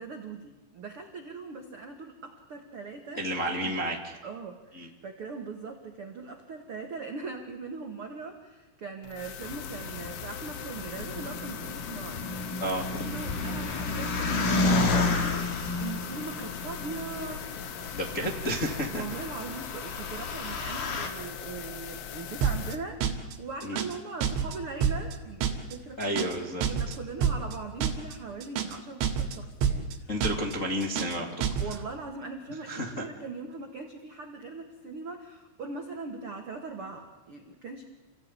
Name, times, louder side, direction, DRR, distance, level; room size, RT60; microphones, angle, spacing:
voice 1, 0.0-3.7 4.2-12.2 12.9-17.5 18.2-18.3 18.9-26.1 26.7-30.1 31.6-37.8, right 4 dB, 60° right, 4 dB, 1.4 m, -40 dB
voice 2, 3.1-4.0 4.7-4.9 12.6-12.9 17.9-19.0 23.6-23.8 26.0-26.7 30.1-31.4 32.6-33.0, equal, 35° left, 0 dB, 1.3 m, -31 dB
sound 1, 9.0-22.8, left 8 dB, 80° left, 3.8 m, -40 dB
sound 2, 9.4-21.1, left 3 dB, 50° left, 3.6 m, -32 dB
sound 3, 22.4-22.8 23.0-23.4 23.6-24.0 24.2-24.6 24.8-25.2 25.4-25.8 26.0-26.4 26.6-27.0 27.2-27.6 27.8-28.2 28.4-28.8 29.0-29.4 29.6-30.0 30.2-30.6 30.8-31.2 31.4-31.8, right 7 dB, 80° right, 4.3 m, -28 dB
28.0 x 16.5 x 9.8 m, 1.1 s
omnidirectional pair, 5.3 m